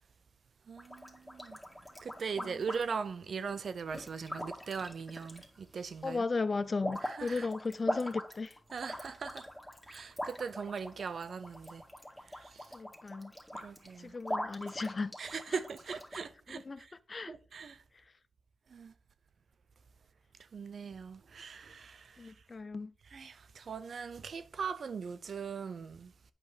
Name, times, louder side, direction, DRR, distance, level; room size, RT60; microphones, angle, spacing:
voice 1, 0.7-1.6 2.0-6.3 7.0-7.5 8.7-9.5 9.9-11.8 12.3-12.7 13.5-14.1 15.2-16.9 17.3-17.8 18.7-18.9 20.5-22.3 23.1-26.1, right 5 dB, 70° right, 0.6 m, -40 dB
sound 1, 0.8-3.1 3.9-5.8 6.1-16.2, left 1 dB, 10° left, 2.0 m, -42 dB
voice 2, 6.0-8.6 12.7-13.3 14.0-15.1 16.5-17.3 22.2-22.9, left 3 dB, 45° left, 0.5 m, -36 dB
8.3 x 5.3 x 5.0 m
cardioid pair, 50°, 0 cm